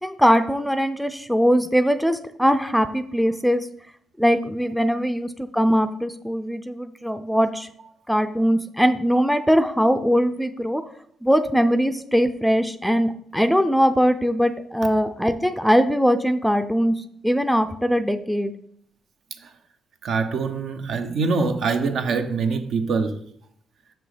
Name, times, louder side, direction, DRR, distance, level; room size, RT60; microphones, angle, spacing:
voice 1, 0.0-3.7 4.2-7.7 8.1-10.8 11.2-18.5, equal, ahead, 0.5 m, -21 dB
voice 2, 20.0-23.2, right 4 dB, 65° right, 0.9 m, -24 dB
6.2 x 6.0 x 5.0 m
cardioid pair, 90°, 0 cm